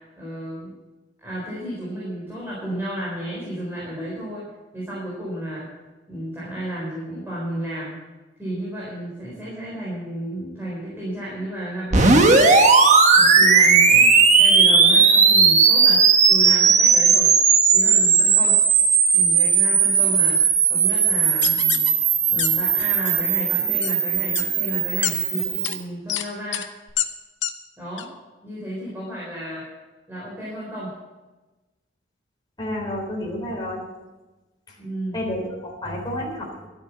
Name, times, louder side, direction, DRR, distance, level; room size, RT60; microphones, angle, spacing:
voice 1, 0.2-0.7 1.2-4.4 4.7-5.7 6.1-8.0 8.4-12.4 13.1-14.1 14.4-17.3 17.7-18.6 19.1-20.4 20.7-21.9 22.3-26.6 27.8-28.1 28.4-29.6 30.1-30.9 34.8-35.2, right 1 dB, 10° right, -7 dB, 4.1 m, -32 dB
sound 1, 11.9-25.8, right 5 dB, 40° right, 1.3 m, -17 dB
sound 2, 21.4-21.9 22.4-22.5 22.8-23.1 23.8-23.9 24.3-24.4 25.0-25.1 25.6-25.7 26.1-26.2 26.5-26.6 27.0-27.1 27.4-27.5 28.0-28.1, left 11 dB, 85° left, 0.9 m, -25 dB
voice 2, 32.6-33.8 35.1-36.7, left 1 dB, 25° left, -2 dB, 3.8 m, -30 dB
13.0 x 8.8 x 6.9 m, 1.2 s
head